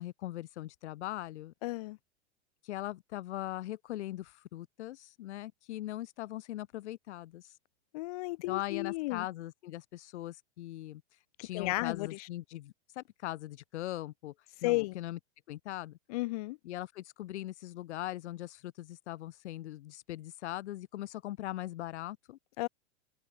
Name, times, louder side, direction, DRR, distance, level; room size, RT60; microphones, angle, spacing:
voice 1, 0.0-1.5 2.6-7.6 8.5-11.0 11.4-14.3 14.6-15.2 15.5-16.0 16.6-22.4, left 15 dB, 80° left, 0.9 m, -40 dB
voice 2, 1.6-2.0 7.9-9.3 11.4-12.3 14.6-15.0 16.1-16.6 22.6-22.7, left 21 dB, 35° left, 0.4 m, -33 dB
supercardioid pair, 150°, 34 cm